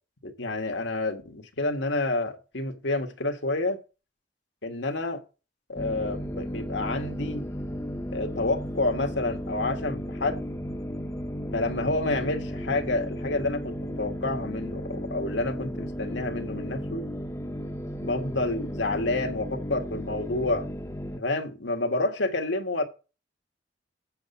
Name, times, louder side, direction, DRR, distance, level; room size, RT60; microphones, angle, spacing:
voice 1, 0.2-3.8 4.6-5.2 5.7-7.5 8.1-10.4 11.5-17.1 18.0-20.7 21.2-22.8, left 2 dB, 80° left, 1.7 m, -29 dB
sound 1, 5.8-21.2, equal, 15° left, 0.8 m, -34 dB
8.1 x 7.8 x 5.5 m
head